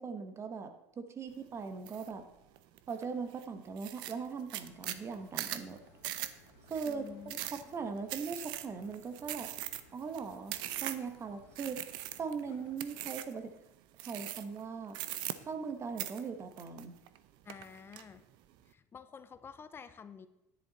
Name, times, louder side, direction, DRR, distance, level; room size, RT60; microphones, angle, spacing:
voice 1, 0.0-2.3 2.9-5.8 6.7-9.5 9.9-11.8 12.2-13.5 14.0-15.0 15.4-17.0, right 5 dB, 30° right, 7 dB, 1.4 m, -40 dB
sound 1, 1.9-2.1 2.6-3.0 3.4-3.5 3.8-11.2 11.6-12.4 12.8-13.4 14.0-14.6 14.9-15.7 16.0-17.2 17.5-18.0, right 14 dB, 65° right, 0.7 m, -40 dB
sound 2, 4.6-13.1, left 6 dB, 80° left, 2.2 m, -63 dB
voice 2, 6.8-7.4 17.4-18.2 18.7-20.3, left 6 dB, 25° left, 13 dB, 0.7 m, -50 dB
10.5 x 10.0 x 4.2 m, 0.89 s
supercardioid pair, 105°, 9 cm